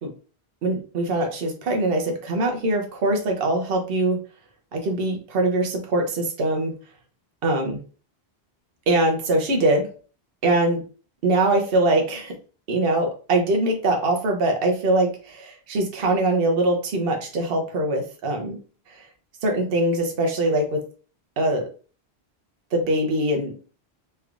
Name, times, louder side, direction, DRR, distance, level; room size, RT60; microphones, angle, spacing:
voice 1, 0.6-4.2 4.7-6.7 7.4-7.8 8.9-9.9 10.4-10.8 11.2-12.3 12.7-18.6 19.4-20.8 21.4-21.6 22.7-23.5, right 2 dB, 65° right, 2 dB, 1.0 m, -22 dB
3.3 x 3.1 x 2.4 m, 0.37 s
omnidirectional pair, 1.1 m